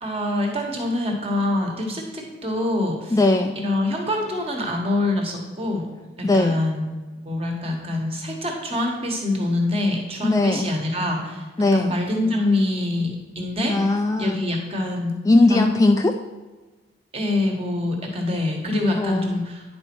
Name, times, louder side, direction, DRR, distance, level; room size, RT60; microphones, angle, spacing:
voice 1, 0.0-3.2 3.6-5.8 6.2-11.4 11.7-13.7 14.2-15.1 15.5-15.7 17.1-19.6, left 2 dB, 30° right, 1 dB, 1.5 m, -25 dB
voice 2, 3.1-3.6 6.2-6.6 10.2-10.7 11.6-11.9 13.7-14.4 15.3-16.2 18.9-19.4, left 2 dB, 15° left, 5 dB, 0.3 m, -19 dB
9.8 x 4.3 x 6.1 m, 1.2 s
head